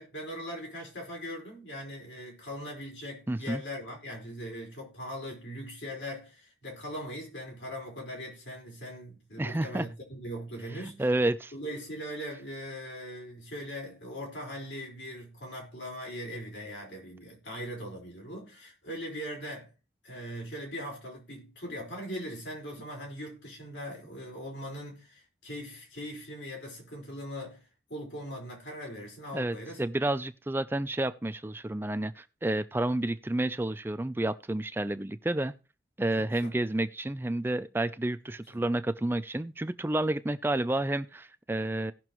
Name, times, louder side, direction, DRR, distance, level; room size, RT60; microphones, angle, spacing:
voice 1, 0.0-11.0 11.5-19.7 20.0-29.8 36.0-36.5 38.5-38.6, equal, 90° left, 4.7 m, -40 dB
voice 2, 3.3-3.6 9.4-9.9 11.0-11.5 29.3-35.5 36.0-41.9, right 1 dB, 10° right, 0.4 m, -30 dB
18.0 x 6.0 x 3.0 m
head